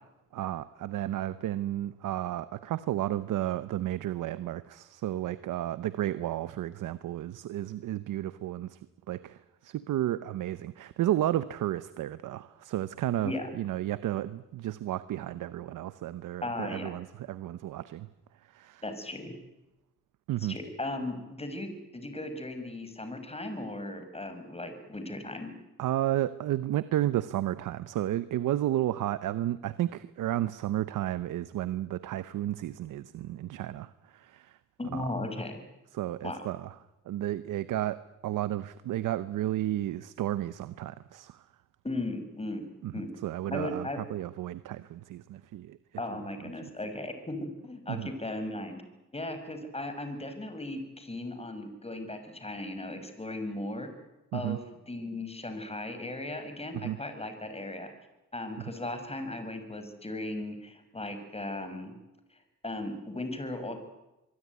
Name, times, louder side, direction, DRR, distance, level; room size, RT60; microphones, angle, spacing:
voice 1, 0.3-8.8 9.1-18.1 18.5-18.8 20.3-20.6 25.8-34.6 34.9-35.1 35.9-36.7 37.1-41.4 42.8-42.9 43.2-45.8 46.6-46.7 47.9-48.1 54.3-54.6 56.8-57.0, right 13 dB, 90° right, 14 dB, 0.9 m, -32 dB
voice 2, 16.4-16.9 18.8-19.3 20.4-25.5 34.8-35.6 36.2-36.4 41.8-42.6 42.9-43.1 43.5-44.0 46.0-48.8 49.1-53.9 54.3-57.9 58.3-61.9 62.6-63.8, left 2 dB, 20° left, 8 dB, 5.7 m, -37 dB
24.5 x 22.5 x 9.6 m, 0.99 s
cardioid pair, 80°, 30 cm